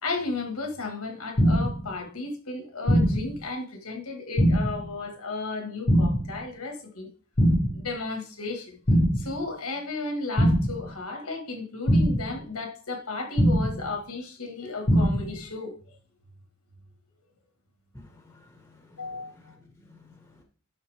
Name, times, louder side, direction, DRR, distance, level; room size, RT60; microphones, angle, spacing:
voice 1, 0.0-7.1 7.7-8.8 9.2-15.7 19.0-19.3, left 3 dB, 75° left, 1.8 m, -34 dB
sound 1, 1.4-1.8 2.9-3.3 4.4-4.8 5.9-6.3 7.4-7.8 8.9-9.3 10.4-10.8 11.9-12.3 13.4-13.8 14.9-15.3, equal, 40° left, 1.2 m, -21 dB
voice 2, 17.9-20.4, left 2 dB, 10° left, 1.3 m, -54 dB
12.0 x 4.2 x 3.5 m
head